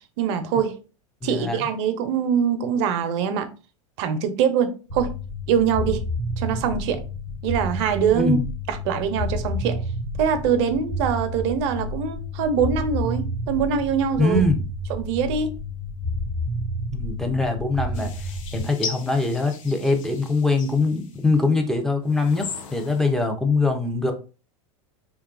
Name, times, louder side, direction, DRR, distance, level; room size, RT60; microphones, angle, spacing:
voice 1, 0.2-0.8 1.2-3.5 4.0-5.1 5.5-6.0 6.4-7.0 7.4-8.4 8.7-9.8 10.2-14.4 14.9-15.5, right 7 dB, 60° right, 0.5 m, -23 dB
voice 2, 1.2-1.6 8.1-8.5 14.2-14.6 16.9-18.1 18.5-24.1, left 3 dB, ahead, 0.5 m, -23 dB
sound 1, 4.9-18.6, left 1 dB, 45° left, 1.1 m, -30 dB
sound 2, 17.9-21.4 22.0-23.1, left 6 dB, 75° left, 0.5 m, -38 dB
2.8 x 2.3 x 2.4 m
hypercardioid pair, 105°, 17 cm